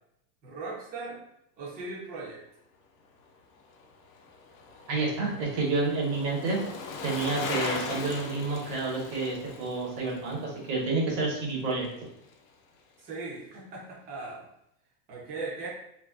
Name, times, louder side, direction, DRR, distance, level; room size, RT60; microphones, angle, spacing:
voice 1, 0.4-1.2 1.6-2.4 13.0-14.5 15.1-15.7, right 3 dB, 20° right, -4 dB, 0.5 m, -38 dB
Bicycle, 3.6-12.0 12.3-12.4, left 4 dB, 55° left, 0.5 m, -39 dB
voice 2, 4.9-6.6 7.0-11.8, right 3 dB, 90° right, -3 dB, 1.1 m, -29 dB
2.5 x 2.3 x 2.3 m, 0.77 s
supercardioid pair, 140°, 49 cm